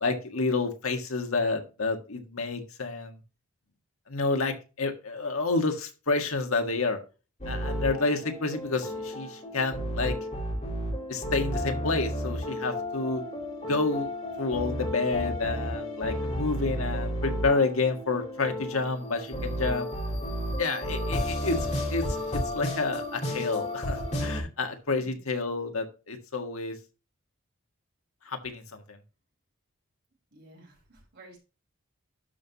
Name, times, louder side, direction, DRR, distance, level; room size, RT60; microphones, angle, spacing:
voice 1, 0.0-3.2 4.1-7.0 7.5-10.2 11.1-13.2 13.7-14.1 14.4-19.9 20.6-26.8 28.3-28.8, left 3 dB, 75° left, 5 dB, 1.7 m, -29 dB
sound 1, 7.4-24.4, equal, 35° left, 4.1 m, -32 dB
voice 2, 30.3-31.4, right 2 dB, 50° right, -1 dB, 4.8 m, -52 dB
12.0 x 5.5 x 2.9 m, 0.32 s
head